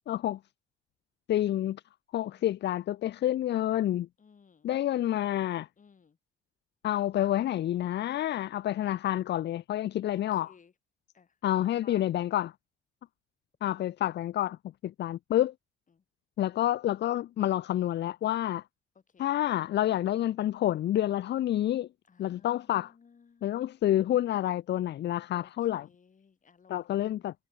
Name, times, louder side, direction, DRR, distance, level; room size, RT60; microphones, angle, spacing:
voice 1, 0.1-0.4 1.3-1.8 2.1-4.1 4.6-5.7 6.8-10.5 11.4-12.5 13.6-14.6 14.8-15.5 16.4-18.6 19.2-21.9 22.2-22.9 23.4-25.9 26.7-27.5, left 12 dB, 60° left, 0.5 m, -28 dB
voice 2, 2.2-2.5 4.2-4.7 5.8-6.2 10.1-10.7 11.1-12.0 13.8-13.9 15.9-16.0 18.9-19.3 22.1-23.6 25.3-27.3, left 6 dB, 40° left, 6.6 m, -59 dB
cardioid pair, 90°, 20 cm